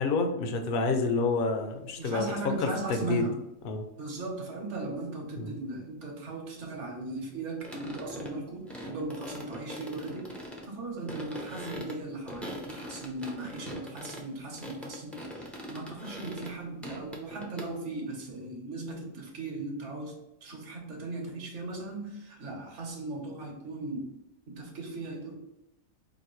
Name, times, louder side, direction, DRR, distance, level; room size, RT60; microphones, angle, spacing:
voice 1, 0.0-2.3 2.6-3.3 3.6-3.9 5.4-5.6, left 3 dB, 55° left, 5 dB, 0.7 m, -28 dB
sound 1, 0.8-0.9 2.1-2.2 7.6-8.4 8.7-10.7 11.0-14.3 14.5-16.6 16.8-17.7, equal, ahead, 0.3 m, -42 dB
voice 2, 2.0-3.4 4.0-24.1 24.5-25.3, right 2 dB, 65° right, 1 dB, 1.2 m, -38 dB
4.8 x 2.6 x 3.0 m, 0.88 s
omnidirectional pair, 1.4 m